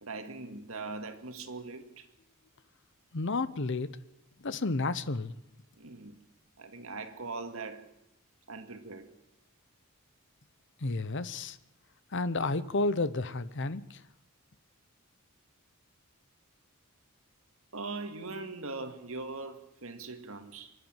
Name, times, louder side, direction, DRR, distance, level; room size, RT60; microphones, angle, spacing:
voice 1, 0.0-2.1 5.8-6.2 6.6-7.9 8.5-9.1 17.7-20.7, right 3 dB, 70° right, 2.1 m, -41 dB
voice 2, 3.1-3.9 4.4-5.4 10.8-11.6 12.1-14.0, left 3 dB, 55° left, 0.9 m, -31 dB
25.5 x 11.5 x 9.1 m
head